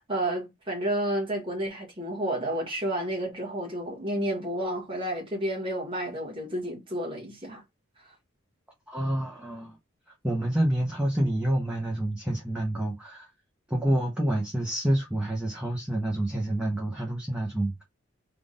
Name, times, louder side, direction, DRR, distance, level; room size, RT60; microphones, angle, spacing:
voice 1, 0.1-7.6, right 1 dB, 25° right, 1.5 m, -31 dB
voice 2, 8.9-9.8 10.2-13.3 13.7-17.8, right 1 dB, 5° right, 0.7 m, -28 dB
3.6 x 2.5 x 3.8 m
head